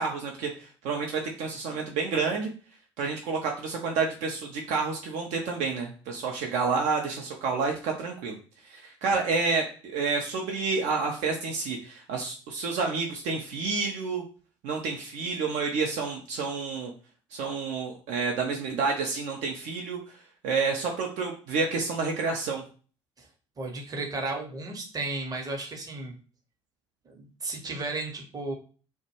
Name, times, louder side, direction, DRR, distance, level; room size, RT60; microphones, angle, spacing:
voice 1, 0.0-2.5 3.0-8.4 8.7-14.2 14.6-16.9 17.3-20.0 20.4-22.6, right 4 dB, 55° right, 1 dB, 0.5 m, -29 dB
voice 2, 23.6-26.1 27.1-28.5, right 2 dB, 25° right, 1 dB, 0.8 m, -34 dB
2.1 x 2.1 x 2.9 m, 0.39 s
figure-of-eight pair, 55°, 15 cm